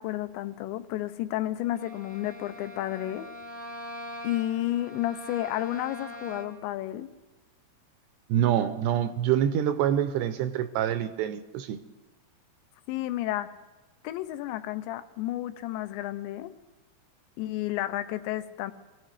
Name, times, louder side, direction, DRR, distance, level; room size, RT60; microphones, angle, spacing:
voice 1, 0.0-3.3 4.2-7.1 12.9-13.6 14.0-16.5 17.4-18.7, left 14 dB, 85° left, 11 dB, 3.0 m, -31 dB
Bowed string instrument, 1.7-6.7, left 1 dB, 40° right, 1.1 m, -42 dB
voice 2, 8.3-11.8, right 10 dB, 80° right, 10 dB, 2.6 m, -26 dB
26.0 x 16.0 x 3.3 m, 1.1 s
omnidirectional pair, 5.2 m